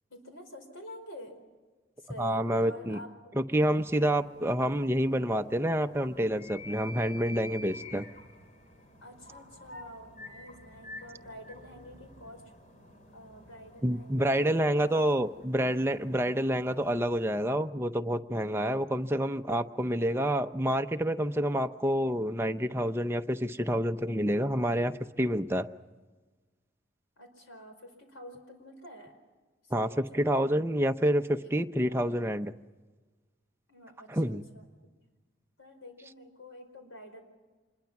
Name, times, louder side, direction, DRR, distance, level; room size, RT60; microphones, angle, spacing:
voice 1, 0.1-1.3 2.0-3.1 9.0-12.4 13.1-15.0 27.2-29.2 29.6-30.3 31.4-31.5 31.9-32.0 33.7-34.7 35.6-37.2, equal, 85° left, 5 dB, 4.8 m, -48 dB
voice 2, 2.2-3.0 3.4-8.1 13.8-25.7 29.7-32.5 34.1-34.4, equal, 10° right, 7 dB, 0.6 m, -28 dB
sound 1, 3.5-17.5, left 1 dB, 35° left, 2.5 m, -50 dB
26.5 x 21.5 x 6.0 m, 1.3 s
head